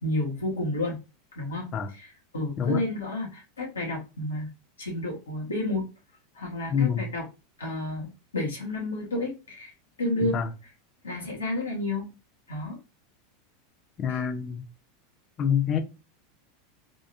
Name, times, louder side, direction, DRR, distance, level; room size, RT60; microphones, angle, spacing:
voice 1, 0.0-1.0 1.3-4.5 4.8-5.8 6.3-7.3 7.6-9.7 10.0-10.4 11.0-12.1 12.5-12.8 14.1-14.3, left 1 dB, 75° left, 1.5 m, -31 dB
voice 2, 6.7-7.1 10.2-10.5 14.0-14.6 15.4-15.8, left 8 dB, 35° left, 0.8 m, -26 dB
3.8 x 3.5 x 2.6 m
figure-of-eight pair, 85°, 0 cm